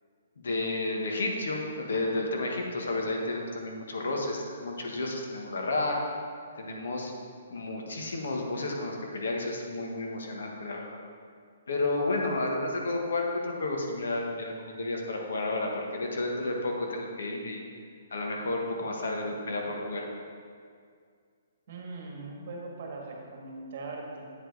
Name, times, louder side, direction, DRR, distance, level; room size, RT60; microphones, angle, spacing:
voice 1, 0.4-6.0 6.6-7.1 7.5-11.0 11.7-17.6 18.1-20.0, left 2 dB, 80° left, 0 dB, 1.3 m, -31 dB
voice 2, 21.7-24.3, right 3 dB, 50° right, 0 dB, 1.5 m, -40 dB
8.9 x 5.0 x 3.9 m, 2.1 s
hypercardioid pair, 160°, 0 cm